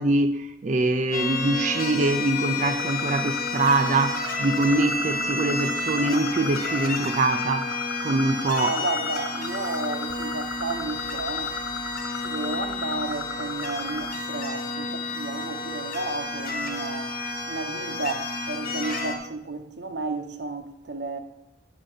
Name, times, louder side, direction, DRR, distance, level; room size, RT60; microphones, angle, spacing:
voice 1, 0.0-7.7 8.0-8.8, right 2 dB, 40° right, 0.4 m, -24 dB
sound 1, 1.1-19.2, left 3 dB, 50° left, 1.3 m, -31 dB
sound 2, 2.8-14.1, left 3 dB, 70° left, 0.9 m, -36 dB
voice 2, 8.6-11.6 12.1-17.1 17.4-21.2, right 3 dB, 70° right, 0.9 m, -32 dB
10.0 x 5.2 x 5.5 m
head